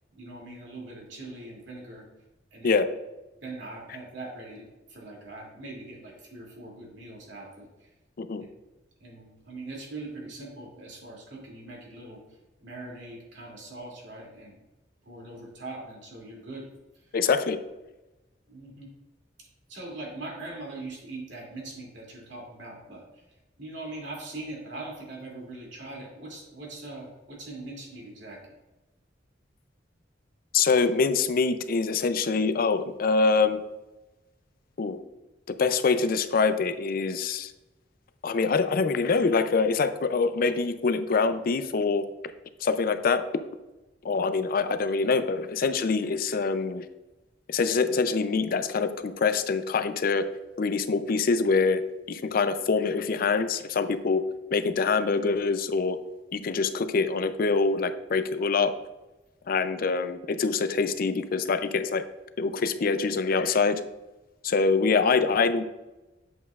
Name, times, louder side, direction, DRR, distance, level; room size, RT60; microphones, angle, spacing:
voice 1, 0.1-2.1 2.5-2.8 3.4-7.9 9.0-12.2 12.6-14.6 15.1-16.7 18.5-18.9 19.7-23.2 23.6-28.4, right 2 dB, 90° right, -3 dB, 2.5 m, -41 dB
voice 2, 17.1-17.6 30.5-33.6 34.8-35.0 35.6-37.5 38.2-42.1 42.6-43.2 44.0-46.8 47.5-50.2 50.6-51.8 52.1-54.2 54.5-56.0 56.3-58.7 59.5-62.0 62.4-63.8 64.4-65.6, left 4 dB, 55° left, 11 dB, 0.4 m, -25 dB
8.1 x 7.2 x 2.4 m, 1.0 s
head